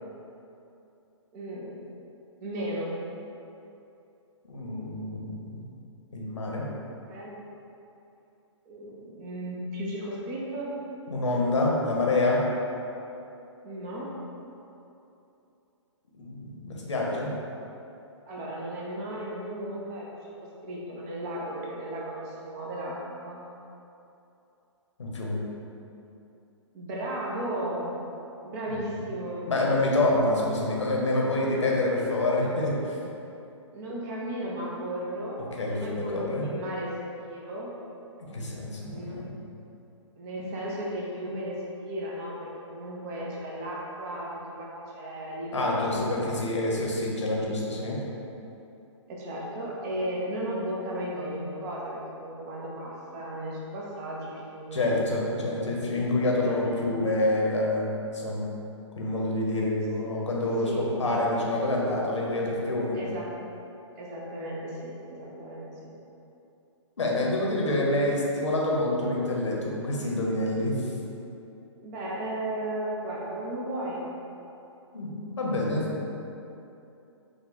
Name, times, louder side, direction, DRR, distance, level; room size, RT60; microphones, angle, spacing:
voice 1, 1.3-1.8 2.4-3.0 7.1-7.4 8.7-10.8 13.6-14.2 18.2-23.5 26.7-27.9 28.4-29.5 33.7-37.7 38.9-39.4 40.2-46.2 46.6-47.0 49.1-54.9 55.2-55.7 56.2-57.1 60.6-60.9 61.1-61.3 62.9-63.3 63.9-65.9 71.8-74.0, right 1 dB, 30° right, -4 dB, 0.8 m, -35 dB
voice 2, 4.5-5.7 6.1-6.6 11.1-12.4 16.2-17.3 25.0-25.4 29.4-33.0 35.5-36.4 38.2-39.4 45.5-48.0 54.7-57.9 58.1-58.5 59.0-63.0 67.0-70.9 74.9-75.8, left 2 dB, 70° left, -3 dB, 1.0 m, -27 dB
5.1 x 2.4 x 4.0 m, 2.8 s
figure-of-eight pair, 125°, 16 cm